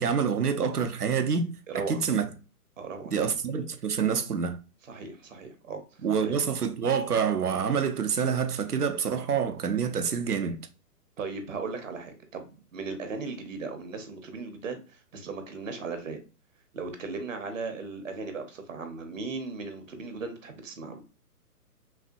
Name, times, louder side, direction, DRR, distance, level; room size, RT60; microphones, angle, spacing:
voice 1, 0.0-2.2 3.1-4.6 6.0-10.6, right 6 dB, 75° right, 0.7 m, -27 dB
voice 2, 1.7-2.0 2.8-3.2 4.9-5.8 6.2-6.4 11.2-16.2 16.7-21.0, right 4 dB, 55° right, 1.0 m, -37 dB
5.8 x 2.2 x 2.6 m
figure-of-eight pair, 130°, 46 cm